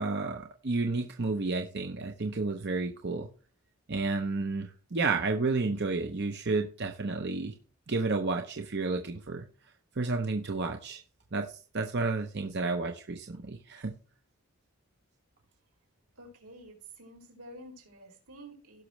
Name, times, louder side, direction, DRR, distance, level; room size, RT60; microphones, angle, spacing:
voice 1, 0.0-3.3 3.9-7.5 7.9-9.4 10.0-11.0 11.3-13.9, right 3 dB, 50° right, 4 dB, 0.8 m, -31 dB
voice 2, 16.1-18.8, right 1 dB, 85° right, -1 dB, 4.9 m, -49 dB
17.0 x 6.1 x 3.2 m, 0.38 s
head